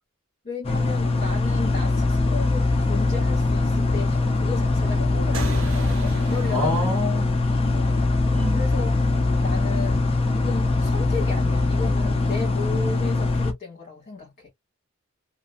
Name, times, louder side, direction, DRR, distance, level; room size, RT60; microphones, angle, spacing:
voice 1, 0.4-7.0 7.7-8.9 9.4-14.5, left 4 dB, 45° left, 1.5 m, -35 dB
sound 1, 0.6-13.5, left 3 dB, 30° left, 0.5 m, -22 dB
sound 2, 5.3-10.2, right 1 dB, 70° right, 0.8 m, -36 dB
voice 2, 6.5-7.4 8.3-8.6, left 1 dB, 5° left, 1.2 m, -27 dB
3.0 x 2.4 x 2.3 m
head